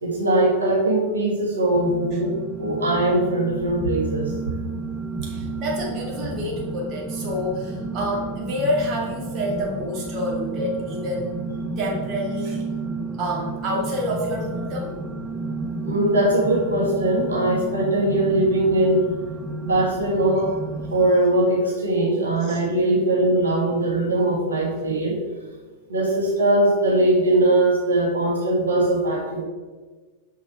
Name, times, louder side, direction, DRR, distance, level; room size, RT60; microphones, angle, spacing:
voice 1, 0.0-2.3 2.6-4.5 15.8-19.1 19.6-20.6 20.9-25.2 25.9-29.4, right 1 dB, 70° right, -3 dB, 1.6 m, -21 dB
sound 1, 1.7-21.1, right 3 dB, 15° right, 0.7 m, -32 dB
voice 2, 5.2-11.4 11.8-12.7 13.1-14.9 22.4-22.6, left 1 dB, 35° right, -2 dB, 2.1 m, -28 dB
6.2 x 5.6 x 4.6 m, 1.4 s
figure-of-eight pair, 90°, 0 cm